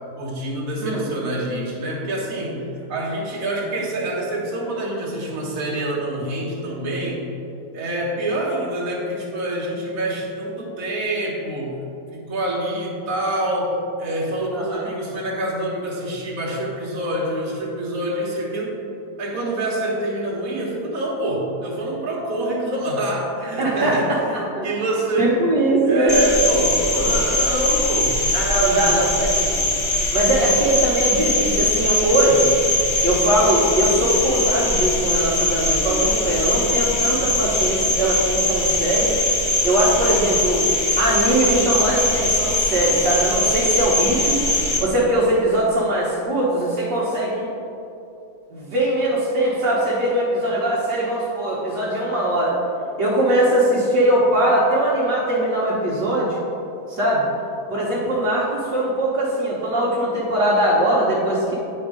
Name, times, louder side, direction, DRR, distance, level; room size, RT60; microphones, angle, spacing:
voice 1, 0.2-7.3 7.7-11.8 12.1-18.8 19.2-25.5 25.8-29.0, right 1 dB, 50° right, -4 dB, 1.7 m, -26 dB
voice 2, 14.5-14.8 23.6-24.7 25.2-26.1 27.0-27.2 28.3-29.6 30.1-32.5 33.0-39.1 39.6-40.7 41.0-44.4 44.8-47.5 48.5-52.6 53.0-56.4 56.9-57.2 57.7-61.5, right 1 dB, 65° right, -7 dB, 1.7 m, -21 dB
Cricket, 26.1-44.8, left 1 dB, 25° left, 1.0 m, -21 dB
9.3 x 4.5 x 4.9 m, 2.8 s
omnidirectional pair, 2.1 m